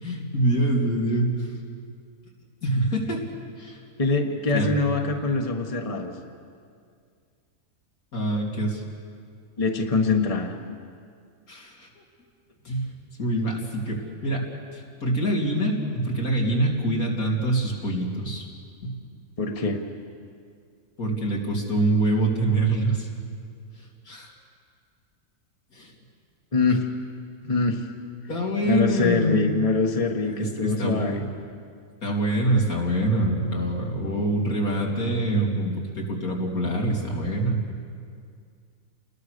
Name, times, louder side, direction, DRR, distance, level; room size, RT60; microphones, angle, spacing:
voice 1, 0.0-1.5 2.6-3.2 3.6-3.8 4.5-4.7 8.1-8.8 11.5-11.9 12.6-14.5 14.7-18.5 18.8-19.0 21.0-23.1 24.1-24.3 25.7-25.9 28.3-29.5 30.2-31.2 32.0-37.6, right 1 dB, 90° left, -2 dB, 3.9 m, -25 dB
voice 2, 4.0-6.1 9.6-10.5 19.4-19.8 26.5-26.8 27.4-27.8 28.6-31.2, left 3 dB, 25° left, 3 dB, 1.5 m, -24 dB
29.5 x 20.5 x 6.8 m, 2.2 s
omnidirectional pair, 1.5 m